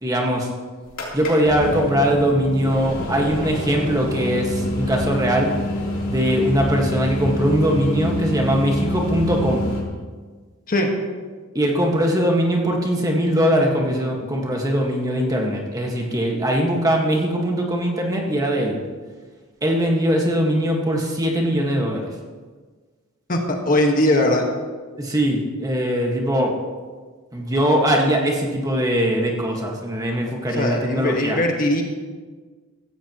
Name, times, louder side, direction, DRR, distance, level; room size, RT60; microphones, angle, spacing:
voice 1, 0.0-0.5 1.1-5.6 6.1-9.6 11.6-18.8 19.6-22.1 25.0-26.6 27.3-31.4, equal, 15° right, 0 dB, 1.6 m, -21 dB
sound 1, 0.9-9.8, left 1 dB, 60° left, 3.5 m, -27 dB
voice 2, 23.6-24.4 30.6-31.8, left 1 dB, 40° left, 2 dB, 1.6 m, -19 dB
15.5 x 15.0 x 3.1 m, 1.4 s
head